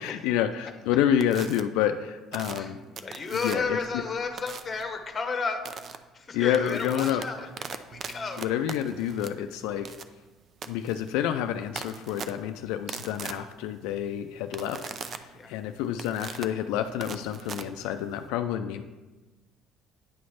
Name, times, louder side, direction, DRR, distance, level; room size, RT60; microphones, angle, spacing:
voice 1, 0.0-2.8 3.4-3.6 6.3-7.2 8.4-9.9 10.7-18.8, left 10 dB, 85° left, 7 dB, 0.3 m, -28 dB
lowvolt sparks, 1.2-1.6 2.3-3.8 4.4-4.8 5.6-6.0 6.4-18.3, right 6 dB, 45° right, 0.5 m, -41 dB
voice 2, 2.5-5.7 6.1-8.4 15.3-15.6, left 4 dB, 30° left, 7 dB, 0.9 m, -33 dB
9.4 x 3.2 x 5.7 m, 1.2 s
cardioid pair, 95°, 0 cm